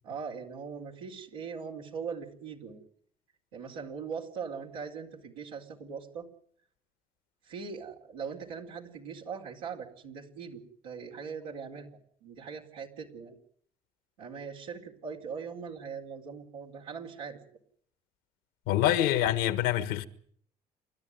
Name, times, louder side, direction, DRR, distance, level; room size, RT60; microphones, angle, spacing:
voice 1, 0.0-2.8 3.5-6.3 7.4-11.9 12.2-13.4 14.2-17.4, right 6 dB, 90° right, 4.2 m, -40 dB
voice 2, 18.7-20.1, left 12 dB, 80° left, 1.6 m, -26 dB
28.5 x 13.0 x 9.4 m
hypercardioid pair, 60°, 18 cm